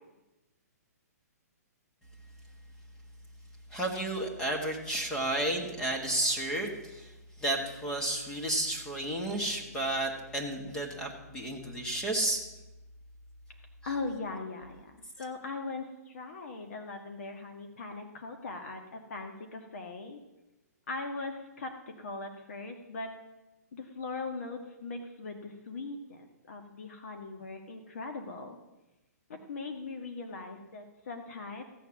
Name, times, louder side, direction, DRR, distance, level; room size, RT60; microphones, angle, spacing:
voice 1, 3.7-7.1 7.4-12.4, right 1 dB, 5° left, 1 dB, 1.6 m, -32 dB
voice 2, 13.8-14.9 15.2-20.2 20.9-23.1 23.7-28.6 29.3-31.6, left 3 dB, 55° left, 4 dB, 1.7 m, -40 dB
15.5 x 7.2 x 7.2 m, 1.0 s
hypercardioid pair, 170°, 9 cm